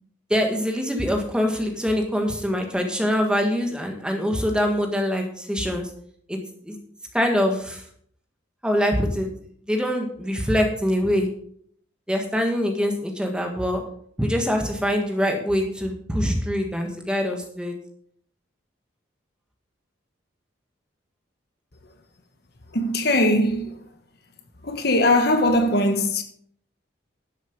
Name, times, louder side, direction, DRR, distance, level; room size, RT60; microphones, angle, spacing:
voice 1, 0.3-5.9 6.3-6.4 6.6-6.8 7.1-7.8 8.6-9.3 9.7-11.3 12.1-13.8 14.2-17.7, equal, 5° right, 1.6 m, -24 dB
voice 2, 22.7-23.8 24.6-26.2, left 1 dB, 55° left, 1.4 m, -20 dB
11.5 x 7.9 x 5.3 m
head